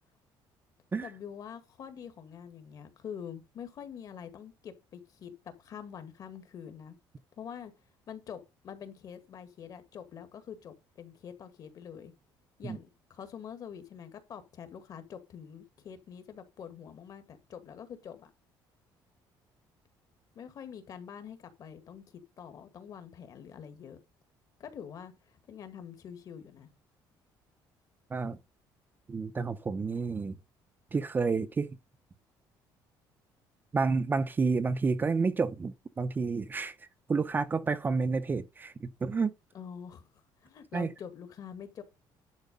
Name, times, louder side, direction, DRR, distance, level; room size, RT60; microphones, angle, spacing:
voice 1, 1.0-7.0 7.4-7.7 8.1-12.1 12.6-18.3 20.4-24.0 24.6-26.7 39.5-41.8, left 8 dB, 45° left, 1.9 m, -45 dB
voice 2, 29.1-30.4 30.9-31.7 33.7-36.8 37.1-39.3 40.7-40.9, right 4 dB, 25° right, 0.6 m, -30 dB
10.5 x 4.6 x 5.3 m
cardioid pair, 135°, 8 cm